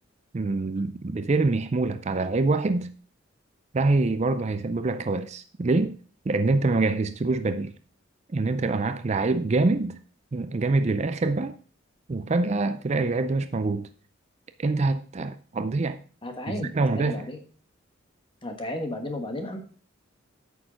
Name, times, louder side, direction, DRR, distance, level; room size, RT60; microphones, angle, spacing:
voice 1, 0.3-2.9 3.7-6.0 6.3-7.7 8.3-10.0 10.3-11.5 12.1-13.9 14.6-16.0 16.5-17.2, right 3 dB, 35° right, 0.4 m, -25 dB
voice 2, 16.2-17.4 18.4-19.6, left 1 dB, 25° left, 1.4 m, -33 dB
9.2 x 6.4 x 5.1 m
head